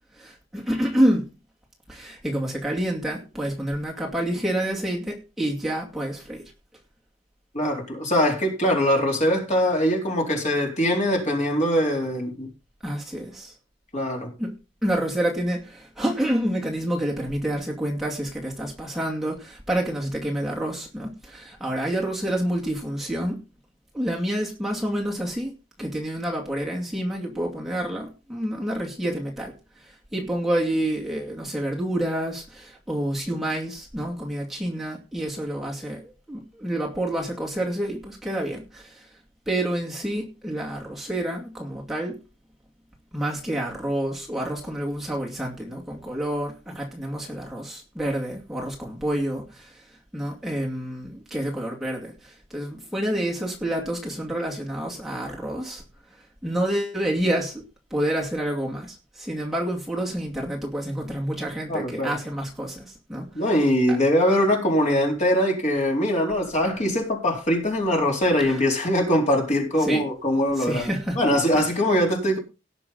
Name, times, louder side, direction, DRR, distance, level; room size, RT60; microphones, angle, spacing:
voice 1, 0.2-1.3 1.9-6.4 12.8-13.5 14.4-14.5 14.8-23.4 23.9-25.5 25.8-29.5 29.8-39.1 39.5-42.2 43.1-49.8 50.1-55.8 56.4-57.6 57.9-63.3 63.9-64.0 68.4-68.6 69.8-70.0 70.6-71.2 71.5-71.7, right 1 dB, ahead, 2.5 m, -28 dB
voice 2, 7.5-12.5 13.9-14.3 61.7-62.1 63.3-70.9 71.2-72.4, equal, 40° left, 4.1 m, -22 dB
18.0 x 6.8 x 4.0 m
head